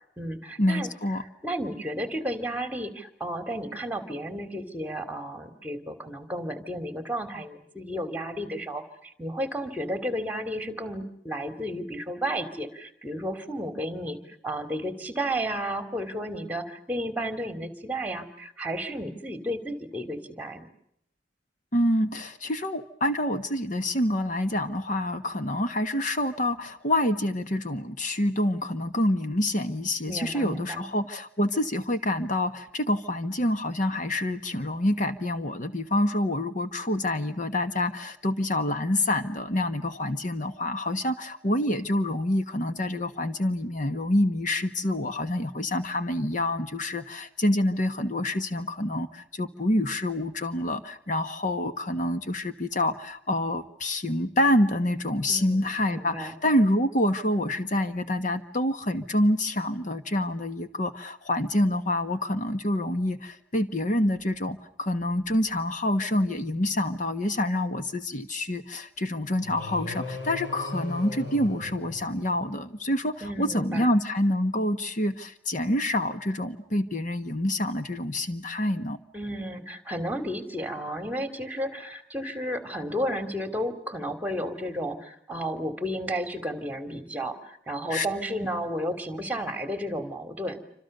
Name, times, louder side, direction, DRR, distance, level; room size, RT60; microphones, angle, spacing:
voice 1, 0.0-0.9 1.2-20.7 30.1-30.9 55.3-56.3 73.2-74.0 79.1-90.7, equal, 10° right, 10 dB, 3.0 m, -33 dB
voice 2, 0.6-1.2 21.7-79.0 87.9-88.1, left 1 dB, 45° left, 9 dB, 1.4 m, -27 dB
sound 1, 69.4-72.7, left 2 dB, 85° left, 7.9 m, -38 dB
28.0 x 26.5 x 6.8 m, 0.74 s
head